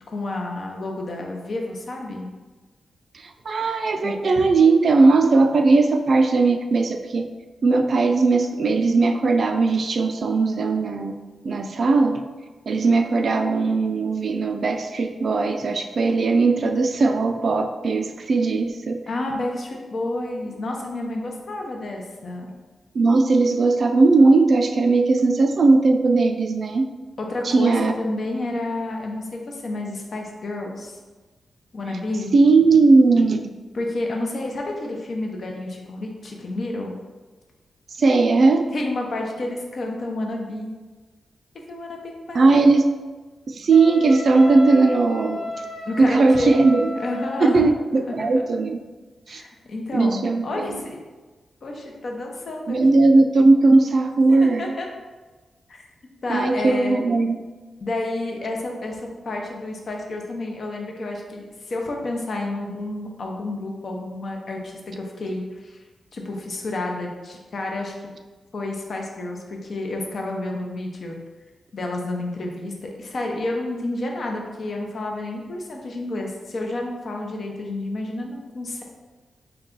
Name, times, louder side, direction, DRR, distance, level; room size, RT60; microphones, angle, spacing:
voice 1, 0.1-2.3 4.0-4.1 19.1-22.5 27.2-31.0 31.7-32.3 33.7-36.9 38.7-40.7 41.7-42.7 45.9-46.6 47.0-47.6 48.1-48.5 49.3-51.0 51.6-53.0 54.3-54.9 55.7-55.9 56.2-57.0 57.8-65.8 66.1-68.1 68.5-71.2 71.7-78.8, left 2 dB, 55° left, 1 dB, 0.7 m, -30 dB
voice 2, 3.5-7.3 7.6-11.2 11.4-12.2 12.7-19.0 22.9-26.9 27.4-27.9 32.3-33.5 38.0-38.6 42.3-42.8 43.5-45.4 46.0-46.9 47.4-48.8 49.3-49.4 49.9-50.8 52.7-54.6 56.3-57.4, right 3 dB, 55° right, 5 dB, 0.3 m, -18 dB
Wind instrument woodwind instrument, 43.7-47.6, left 2 dB, 75° left, 1.2 m, -33 dB
3.9 x 2.3 x 3.7 m, 1.3 s
wide cardioid pair, 100°, 0 cm